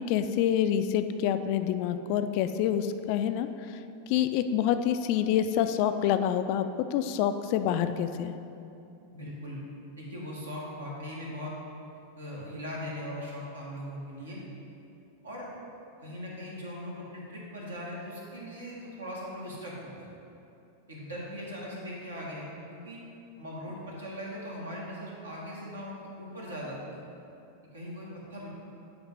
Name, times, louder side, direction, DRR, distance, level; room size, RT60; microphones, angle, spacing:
voice 1, 0.0-3.5 4.1-6.6 6.9-8.3, left 10 dB, 45° left, 9 dB, 0.3 m, -27 dB
voice 2, 9.1-9.6 10.0-11.5 12.1-14.4 15.2-15.5 16.0-20.1 20.9-23.0 23.4-27.0 27.7-28.5, equal, 75° right, -4 dB, 1.5 m, -40 dB
9.3 x 3.2 x 5.1 m, 2.7 s
figure-of-eight pair, 90°, 0 cm